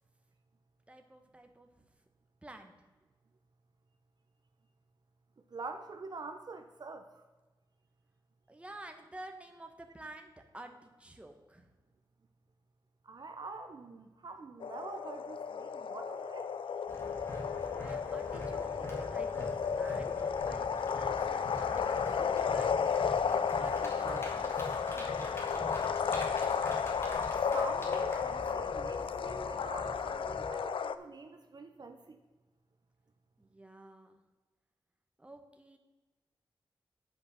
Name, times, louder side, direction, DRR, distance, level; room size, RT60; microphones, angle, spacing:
voice 1, 0.9-1.7 2.4-2.7 8.5-10.7 11.0-11.7 17.8-20.1 20.5-21.9 22.5-22.7 23.5-25.5 33.4-34.2 35.2-35.8, right 1 dB, 15° right, 5 dB, 1.0 m, -50 dB
voice 2, 5.5-7.3 13.0-16.6 27.2-32.2, right 3 dB, 50° right, 6 dB, 0.7 m, -45 dB
sound 1, 14.6-31.0, left 6 dB, 85° left, 0.4 m, -33 dB
sound 2, 16.9-30.5, left 1 dB, 30° left, 2.2 m, -44 dB
8.7 x 5.2 x 5.8 m, 1.2 s
wide cardioid pair, 125°, 9 cm